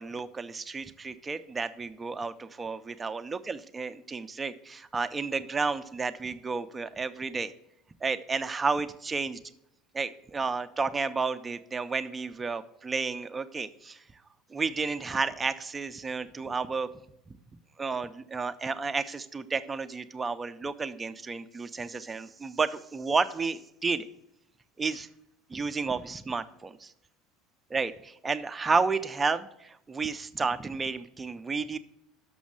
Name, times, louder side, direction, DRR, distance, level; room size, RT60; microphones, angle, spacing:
voice 1, 0.0-7.5 8.0-9.4 9.9-14.0 14.5-16.9 17.8-24.1 24.8-25.1 25.5-26.9 27.7-31.8, right 4 dB, 15° right, 10 dB, 0.4 m, -31 dB
6.3 x 6.2 x 7.2 m, 0.81 s
cardioid pair, 160°, 0 cm